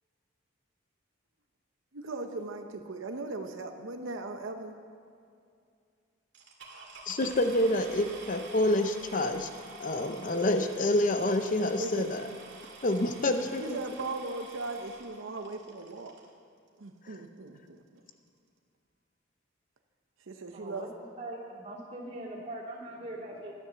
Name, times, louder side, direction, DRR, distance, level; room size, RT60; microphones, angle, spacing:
voice 1, 1.9-4.7 11.8-12.3 13.6-16.1 16.8-17.8 20.3-20.9, right 3 dB, 80° right, 5 dB, 0.8 m, -38 dB
sound 1, 6.3-16.3 17.1-17.2 17.7-17.8 18.0-18.3, right 3 dB, 60° right, 2.1 m, -49 dB
voice 2, 7.1-9.5 9.8-12.2 12.8-13.8, left 1 dB, 40° left, 7 dB, 0.6 m, -27 dB
voice 3, 20.5-23.5, right 1 dB, 35° right, -5 dB, 2.7 m, -41 dB
12.5 x 10.0 x 6.9 m, 2.4 s
head